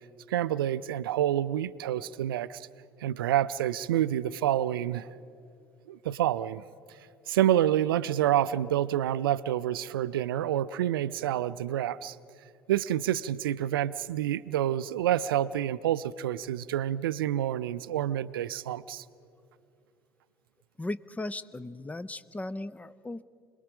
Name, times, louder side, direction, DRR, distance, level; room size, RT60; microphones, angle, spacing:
voice 1, 0.3-2.7 3.0-5.1 5.9-6.6 7.3-12.2 12.7-19.0, right 12 dB, 70° right, 18 dB, 0.4 m, -28 dB
voice 2, 20.8-23.2, left 2 dB, 10° left, 16 dB, 0.5 m, -37 dB
26.5 x 20.0 x 5.1 m, 2.4 s
figure-of-eight pair, 60°, 12 cm